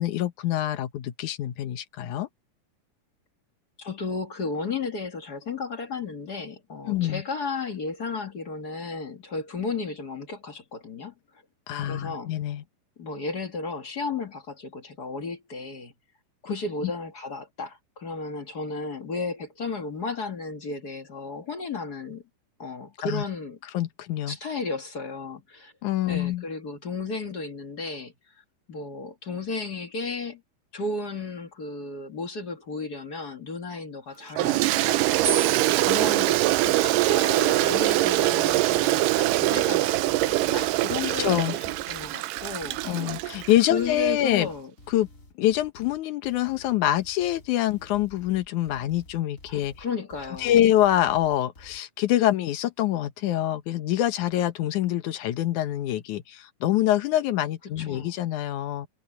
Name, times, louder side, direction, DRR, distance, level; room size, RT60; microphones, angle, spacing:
voice 1, 0.0-2.3 6.9-7.2 11.7-12.6 23.0-23.2 23.7-24.4 25.8-26.4 41.1-41.6 42.8-44.5 44.9-45.1 45.4-49.7 50.4-58.9, left 13 dB, 70° left, 2.5 m, -25 dB
voice 2, 3.8-11.1 11.8-12.3 13.0-15.9 16.4-22.2 22.6-23.6 24.3-25.7 26.1-28.1 28.7-30.4 30.7-35.1 35.7-42.8 43.7-44.7 49.5-50.6 57.6-58.2, left 3 dB, 40° left, 1.6 m, -34 dB
Toilet flush, 34.4-43.7, right 17 dB, 85° right, 2.3 m, -23 dB
sound 1, 35.2-37.5 38.3-38.8, right 3 dB, 55° right, 1.1 m, -36 dB
sound 2, 36.3-51.8, left 1 dB, 25° left, 3.5 m, -51 dB
omnidirectional pair, 3.9 m